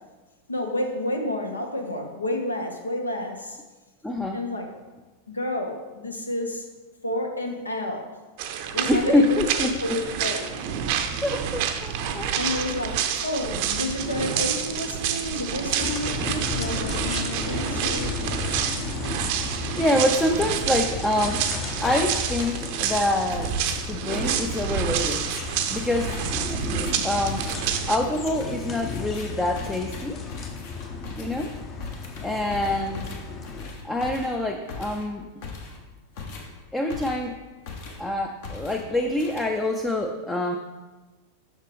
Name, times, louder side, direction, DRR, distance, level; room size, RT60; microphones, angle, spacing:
voice 1, 0.5-3.6 4.3-4.7 5.3-6.6 7.0-8.1 8.7-9.4 9.8-10.5 12.3-18.1, left 1 dB, 80° left, 3 dB, 0.7 m, -30 dB
voice 2, 4.0-4.4 8.9-10.0 11.2-12.6 19.4-23.6 23.8-25.3 25.7-26.2 26.5-27.5 27.9-30.2 31.2-31.6 32.2-33.0 33.8-35.3 36.7-37.4 38.0-40.6, left 1 dB, 10° left, 4 dB, 0.4 m, -26 dB
sound 1, 8.4-28.0, right 8 dB, 45° right, 0.5 m, -28 dB
sound 2, 15.8-33.7, left 4 dB, 30° left, 0.8 m, -34 dB
sound 3, 21.7-22.1 22.4-37.4 37.7-38.1 38.4-39.8, left 4 dB, 50° left, 1.1 m, -40 dB
6.4 x 6.2 x 3.3 m, 1.2 s
figure-of-eight pair, 90°, 0 cm